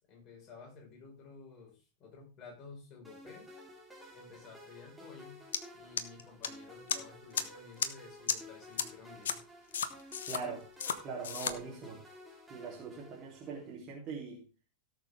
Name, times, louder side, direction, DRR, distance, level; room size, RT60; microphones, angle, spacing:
voice 1, 0.1-3.5 4.1-5.4 5.7-9.4, left 4 dB, 30° left, 0 dB, 5.1 m, -53 dB
sound 1, 3.0-13.7, left 1 dB, 5° right, 3.4 m, -53 dB
sound 2, 5.5-5.6 6.0-6.5 6.9-7.0 7.3-7.4 7.8-7.9 8.3-8.4 8.8-8.9 9.2-9.3 9.7-10.4 10.8-11.0 11.2-11.5, left 7 dB, 65° left, 1.0 m, -32 dB
voice 2, 10.3-10.6 11.0-12.0 12.5-14.4, right 5 dB, 30° right, -4 dB, 3.6 m, -42 dB
17.5 x 6.7 x 3.6 m, 0.32 s
figure-of-eight pair, 90°, 0 cm